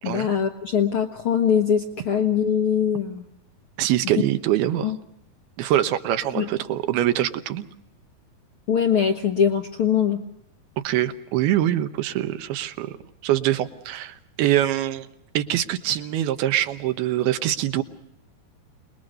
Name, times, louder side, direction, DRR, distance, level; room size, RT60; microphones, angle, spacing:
voice 1, 0.0-3.2 4.8-5.0 6.3-6.5 8.7-10.2, left 8 dB, 75° left, 5 dB, 1.2 m, -22 dB
voice 2, 3.8-4.9 5.6-7.7 10.8-12.9 13.2-15.1 15.3-17.8, right 12 dB, 85° right, 10 dB, 3.0 m, -24 dB
28.0 x 20.5 x 6.5 m, 0.75 s
omnidirectional pair, 4.3 m